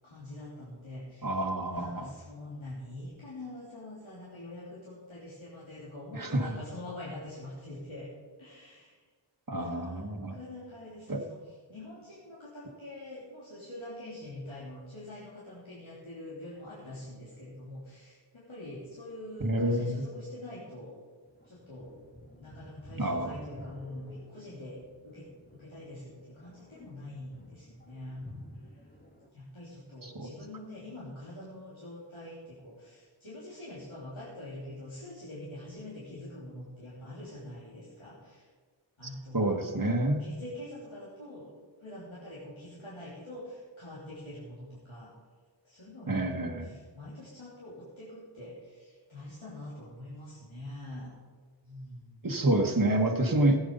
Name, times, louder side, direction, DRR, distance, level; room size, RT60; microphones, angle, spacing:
voice 1, 0.0-1.3 1.7-8.1 8.4-9.0 9.5-20.9 21.4-21.9 22.3-28.2 29.3-38.5 39.0-41.5 41.8-45.1 45.6-51.1 51.6-52.5, left 1 dB, 85° left, -8 dB, 3.3 m, -45 dB
voice 2, 1.2-2.1 6.1-6.6 9.5-10.4 11.1-11.2 19.4-20.0 23.0-23.3 30.0-30.3 39.3-40.2 46.1-46.7 52.2-53.6, right 1 dB, 45° right, 4 dB, 1.5 m, -28 dB
sound 1, 21.3-29.3, equal, 20° left, 1.9 m, -51 dB
15.5 x 8.7 x 5.4 m, 1.5 s
wide cardioid pair, 45°, 47 cm